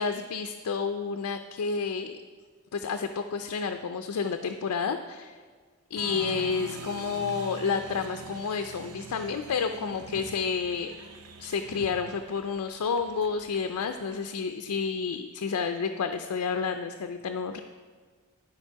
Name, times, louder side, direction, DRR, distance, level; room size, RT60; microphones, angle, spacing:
voice 1, 0.0-2.2 2.7-5.3 5.9-10.9 11.4-17.6, left 5 dB, 85° left, 6 dB, 0.4 m, -30 dB
Applause, 5.9-14.3, right 4 dB, 80° right, 0.6 m, -44 dB
11.0 x 5.2 x 4.6 m, 1.5 s
head